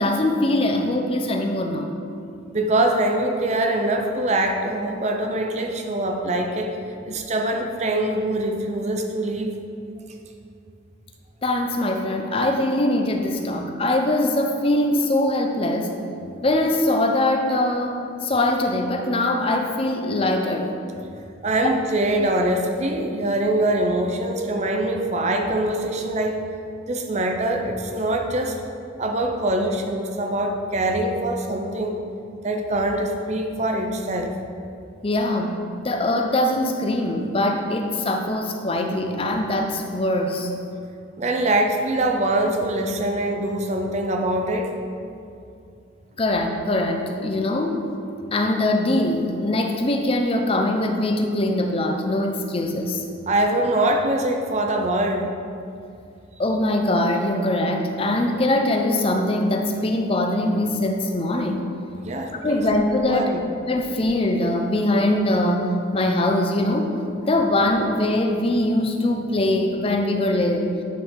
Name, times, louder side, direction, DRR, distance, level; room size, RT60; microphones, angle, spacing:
voice 1, 0.0-1.9 11.4-16.0 16.4-20.7 35.0-40.5 46.2-47.9 48.3-53.0 56.4-61.7 62.4-63.3 63.7-66.9 67.2-70.7, left 1 dB, 30° left, 4 dB, 0.5 m, -22 dB
voice 2, 2.5-6.8 7.1-9.6 21.4-26.4 26.9-28.6 29.0-32.0 32.4-34.3 41.2-44.7 53.3-55.3 62.0-62.6 63.1-63.4, right 1 dB, 35° right, 3 dB, 0.6 m, -23 dB
10.0 x 4.4 x 3.7 m, 2.5 s
head